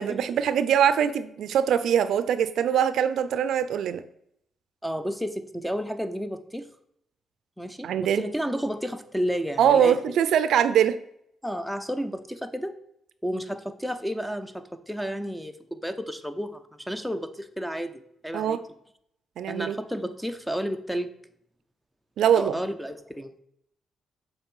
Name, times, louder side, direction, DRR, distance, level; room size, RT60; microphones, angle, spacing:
voice 1, 0.0-4.0 7.8-8.2 9.6-11.0 18.3-18.6 19.4-19.8 22.2-22.6, right 9 dB, 80° right, 13 dB, 0.4 m, -22 dB
voice 2, 4.8-6.7 7.6-10.2 11.4-12.7 13.2-18.6 19.5-21.1 22.3-23.4, equal, ahead, 10 dB, 0.5 m, -32 dB
7.2 x 3.3 x 5.4 m, 0.73 s
cardioid pair, 110°, 0 cm